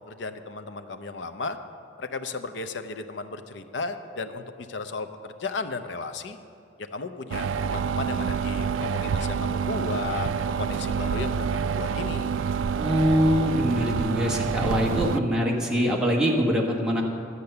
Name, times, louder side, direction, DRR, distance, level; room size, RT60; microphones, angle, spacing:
voice 1, 0.1-1.6 2.0-6.4 6.8-10.3 10.6-12.3, left 3 dB, 60° left, 9 dB, 0.7 m, -34 dB
sound 1, 7.3-15.2, right 6 dB, 75° right, 0.3 m, -27 dB
voice 2, 12.8-17.0, equal, 5° right, -2 dB, 1.4 m, -23 dB
12.0 x 8.3 x 6.8 m, 2.6 s
head